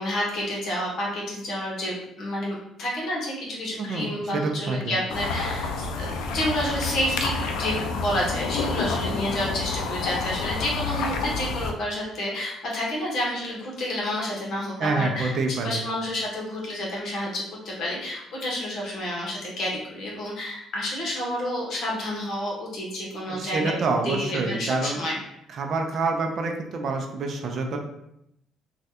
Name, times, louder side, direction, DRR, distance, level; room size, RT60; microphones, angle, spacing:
voice 1, 0.0-15.3 15.6-23.8 24.0-25.2, left 1 dB, 65° left, -3 dB, 1.1 m, -29 dB
voice 2, 4.3-5.0 14.8-15.8 23.3-25.0 25.5-27.8, right 3 dB, 60° right, 3 dB, 0.5 m, -27 dB
sound 1, 5.1-11.7, left 4 dB, 85° left, 0.3 m, -29 dB
3.2 x 2.3 x 2.8 m, 0.79 s
cardioid pair, 85°, 0 cm